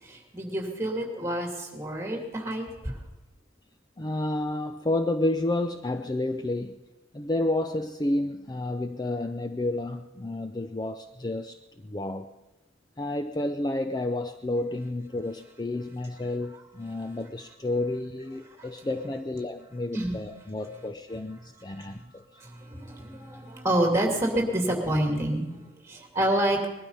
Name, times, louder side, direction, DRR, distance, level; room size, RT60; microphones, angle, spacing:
voice 1, 0.0-3.0 18.6-18.7 19.9-20.2 21.7-22.1 22.4-26.7, right 1 dB, 15° right, 2 dB, 2.5 m, -28 dB
voice 2, 4.0-6.8 7.1-12.3 13.0-22.4, left 2 dB, 20° left, 8 dB, 0.5 m, -30 dB
20.5 x 12.5 x 5.5 m, 1.0 s
head